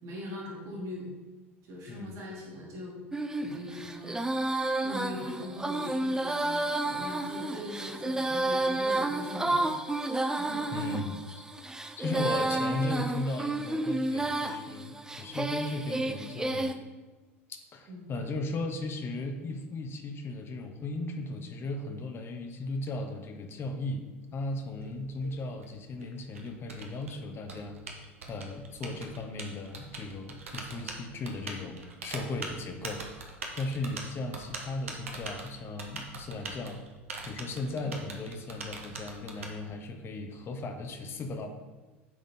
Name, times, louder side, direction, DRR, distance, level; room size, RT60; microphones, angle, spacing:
voice 1, 0.0-1.1 1.7-3.0 3.4-4.2 4.8-9.7 10.2-10.6 17.9-18.0 37.7-37.9, left 1 dB, 50° right, -4 dB, 2.3 m, -41 dB
Female singing, 3.1-16.7, right 2 dB, 10° right, 0.5 m, -31 dB
voice 2, 10.7-11.4 12.0-16.8 17.7-24.1 24.3-36.8 37.2-41.5, left 2 dB, 35° left, 5 dB, 0.8 m, -36 dB
Typing, 24.7-39.5, right 3 dB, 80° right, 0.8 m, -42 dB
9.3 x 3.9 x 3.7 m, 1.2 s
figure-of-eight pair, 75°, 7 cm